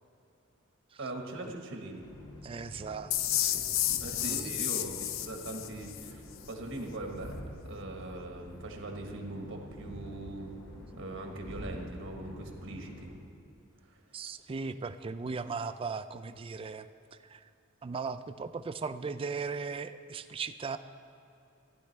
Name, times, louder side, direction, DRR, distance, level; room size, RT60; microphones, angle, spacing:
voice 1, 1.0-2.0 4.0-7.4 7.6-10.5 10.9-13.1 13.8-14.0, right 2 dB, 65° right, 2 dB, 1.3 m, -41 dB
sound 1, 2.0-13.2, equal, 85° left, 1.7 m, -47 dB
voice 2, 2.4-3.8 4.2-4.5 14.1-16.9 17.3-17.4 17.8-20.8, right 5 dB, 25° right, 11 dB, 0.3 m, -38 dB
sound 2, 3.1-6.1, left 12 dB, 70° left, 0.4 m, -31 dB
15.0 x 10.0 x 3.3 m, 2.6 s
head